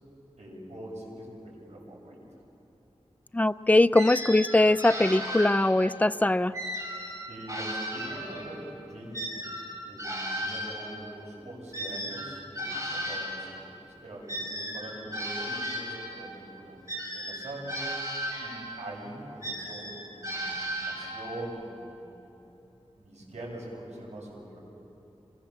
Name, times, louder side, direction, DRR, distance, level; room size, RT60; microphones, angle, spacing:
voice 1, 0.4-2.2 7.3-9.4 9.8-16.7 17.1-17.8 18.4-22.3 22.9-24.6, right 1 dB, 90° right, -4 dB, 8.0 m, -43 dB
voice 2, 3.3-6.5, left 2 dB, 15° left, 13 dB, 0.5 m, -21 dB
sound 1, 3.9-6.0 6.5-8.6 9.1-13.5 14.3-16.2 16.9-18.8 19.4-21.4, equal, 30° right, 6.7 m, -35 dB
28.5 x 23.0 x 7.4 m, 3.0 s
wide cardioid pair, 70°, 11 cm